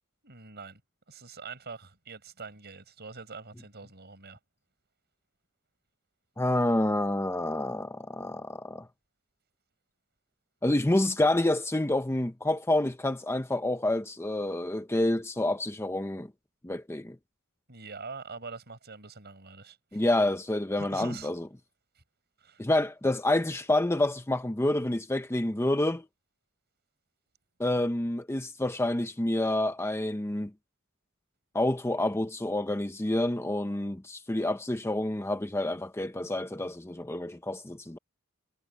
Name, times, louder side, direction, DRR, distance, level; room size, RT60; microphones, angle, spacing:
voice 1, 0.2-0.8 1.1-4.4 17.7-20.0 20.8-21.3 22.4-22.6, right 4 dB, 50° right, 6.3 m, -44 dB
voice 2, 6.4-8.9 10.6-16.3 16.6-17.2 19.9-21.5 22.6-26.1 27.6-30.5 31.5-38.0, left 1 dB, 10° left, 0.7 m, -28 dB
head